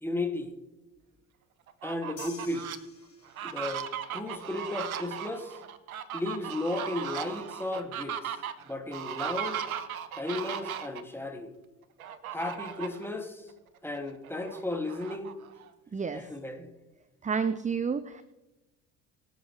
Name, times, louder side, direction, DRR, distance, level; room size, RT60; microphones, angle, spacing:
voice 1, 0.0-0.6 1.8-2.7 3.4-3.9 4.1-5.6 6.1-8.3 8.6-9.7 10.1-11.5 12.3-13.5 13.8-15.3 16.1-16.7, left 2 dB, 5° left, 3 dB, 2.8 m, -34 dB
Fowl, 1.7-2.8 3.3-11.0 12.0-13.1 13.5-13.6 14.0-15.7, right 9 dB, 85° right, 0.8 m, -37 dB
sound 1, 2.2-3.7, left 5 dB, 35° left, 4.8 m, -49 dB
voice 2, 15.9-16.2 17.2-18.2, right 6 dB, 20° right, 15 dB, 0.7 m, -30 dB
23.5 x 8.2 x 3.4 m, 1.1 s
hypercardioid pair, 55°, 41 cm